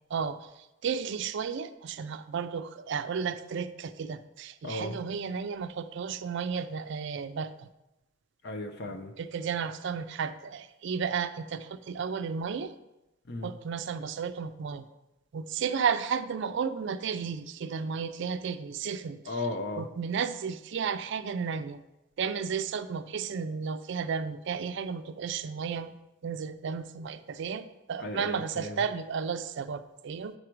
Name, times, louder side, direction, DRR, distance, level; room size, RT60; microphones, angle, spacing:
voice 1, 0.8-7.7 9.2-12.7 13.4-14.8 15.3-19.4 19.8-21.8 22.2-25.9 26.2-30.3, right 6 dB, 55° right, 12 dB, 0.4 m, -33 dB
voice 2, 4.6-5.0 8.4-9.1 13.3-13.5 19.2-19.9 28.0-28.8, left 2 dB, 50° left, 6 dB, 0.7 m, -35 dB
8.7 x 4.9 x 4.5 m, 0.95 s
head